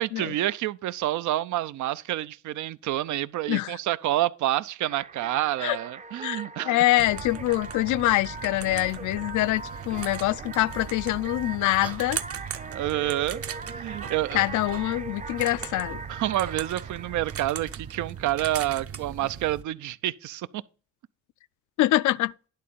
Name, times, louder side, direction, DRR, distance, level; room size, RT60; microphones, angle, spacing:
voice 1, 0.0-6.8 12.7-13.4 13.7-14.4 16.1-20.6, right 14 dB, 75° right, 0.5 m, -28 dB
voice 2, 3.5-3.8 5.6-5.8 6.2-12.2 14.3-16.0 21.8-22.3, left 16 dB, 80° left, 0.4 m, -25 dB
sound 1, 4.8-18.3, right 3 dB, 25° right, 0.6 m, -41 dB
sound 2, 7.0-19.6, right 7 dB, 50° right, 0.9 m, -39 dB
10.5 x 3.7 x 6.9 m
cardioid pair, 90°, 30 cm